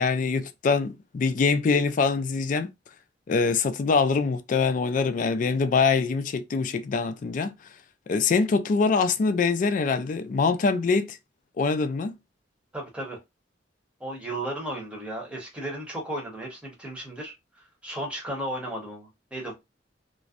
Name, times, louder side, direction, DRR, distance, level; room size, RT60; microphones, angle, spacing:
voice 1, 0.0-2.7 3.3-7.5 8.1-11.2 11.6-12.2, left 4 dB, 45° left, 0.3 m, -24 dB
voice 2, 12.7-13.2 14.0-17.3 17.8-19.5, right 1 dB, 5° right, 0.9 m, -34 dB
2.5 x 2.1 x 2.4 m
head